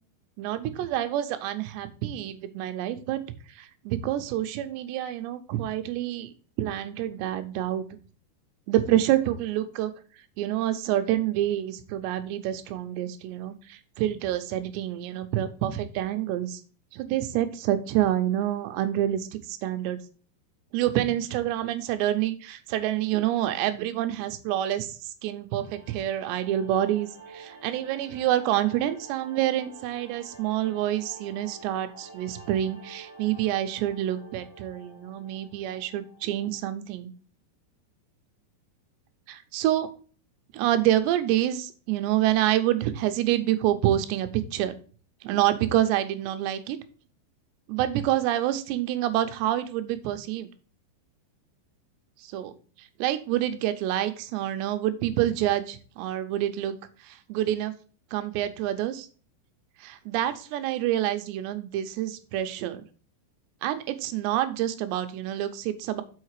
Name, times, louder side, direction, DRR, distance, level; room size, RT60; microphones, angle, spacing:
voice 1, 0.4-3.2 3.6-7.8 8.7-9.9 10.4-16.6 16.9-20.0 20.7-37.1 39.3-39.9 40.5-44.7 45.2-46.8 47.7-50.5 52.2-52.5 52.8-56.8 57.0-57.7 58.1-59.1 59.8-62.8 63.6-66.0, right 12 dB, 80° right, 9 dB, 2.8 m, -27 dB
sound 1, 25.5-36.6, right 3 dB, 40° right, 1.4 m, -49 dB
6.4 x 5.7 x 4.8 m, 0.39 s
omnidirectional pair, 5.2 m